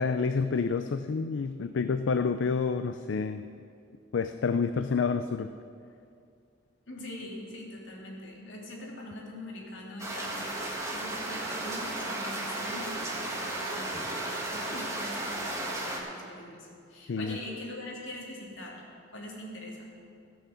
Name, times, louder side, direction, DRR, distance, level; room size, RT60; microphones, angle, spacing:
voice 1, 0.0-3.5 4.1-5.5 17.1-17.4, left 5 dB, 75° left, 9 dB, 0.4 m, -28 dB
voice 2, 6.9-10.5 10.9-18.8 19.1-19.8, left 1 dB, 90° left, -2 dB, 2.6 m, -43 dB
sound 1, 10.0-16.0, right 1 dB, 15° right, 1.6 m, -34 dB
16.5 x 6.4 x 6.9 m, 2.4 s
head